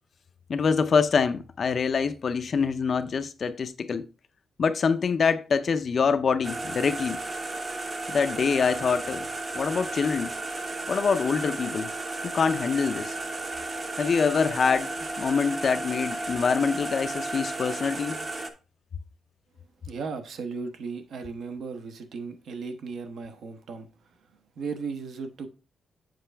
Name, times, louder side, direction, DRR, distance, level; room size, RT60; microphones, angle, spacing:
voice 1, 0.5-4.1 4.6-7.2 8.1-9.3 9.5-10.3 10.9-11.9 12.2-13.1 14.0-14.9 15.2-18.2, left 5 dB, 40° left, 0.5 m, -25 dB
sound 1, 6.4-18.5, right 2 dB, 25° right, 0.7 m, -34 dB
voice 2, 19.8-25.5, right 4 dB, 65° right, 0.9 m, -36 dB
7.6 x 5.3 x 3.3 m
wide cardioid pair, 170°, 0 cm